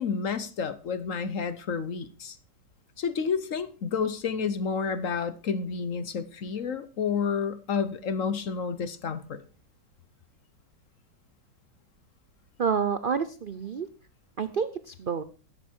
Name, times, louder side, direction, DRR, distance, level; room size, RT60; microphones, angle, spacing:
voice 1, 0.0-2.4 3.0-9.4, left 6 dB, 55° left, 1.1 m, -30 dB
voice 2, 12.6-13.9 14.4-15.2, right 6 dB, 80° right, 0.4 m, -28 dB
12.5 x 10.5 x 4.5 m
omnidirectional pair, 1.9 m